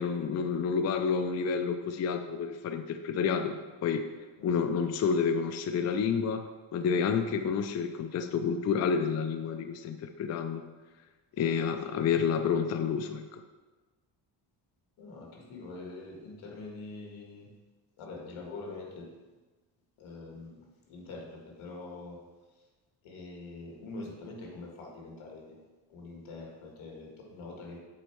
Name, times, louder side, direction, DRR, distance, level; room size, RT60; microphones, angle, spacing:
voice 1, 0.0-4.0 4.4-6.5 6.7-10.6 11.4-13.4, left 6 dB, 35° left, 7 dB, 0.4 m, -29 dB
voice 2, 4.4-4.7 7.3-7.4 11.4-11.9 15.0-17.5 18.0-19.1 20.0-22.2 22.5-22.7 23.0-25.6 25.9-27.8, left 3 dB, 85° left, -1 dB, 1.8 m, -44 dB
7.0 x 4.5 x 4.5 m, 1.3 s
cardioid pair, 125°, 47 cm